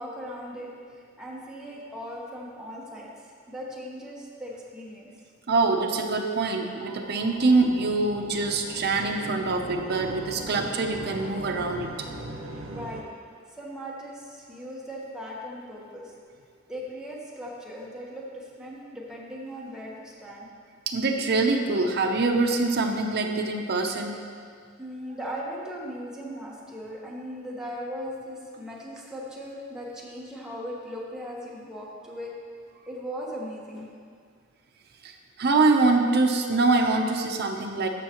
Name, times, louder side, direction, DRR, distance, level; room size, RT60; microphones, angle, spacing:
voice 1, 0.0-3.1 3.5-5.1 12.4-13.1 13.5-16.1 16.7-20.5 24.8-32.4 32.9-34.0, equal, 5° right, -5 dB, 1.2 m, -38 dB
voice 2, 5.5-12.1 20.9-24.2 35.0-35.1 35.4-37.9, right 3 dB, 55° right, 3 dB, 0.7 m, -24 dB
sound 1, 6.6-13.0, right 1 dB, 90° right, 1.0 m, -39 dB
13.0 x 5.6 x 3.0 m, 2.1 s
head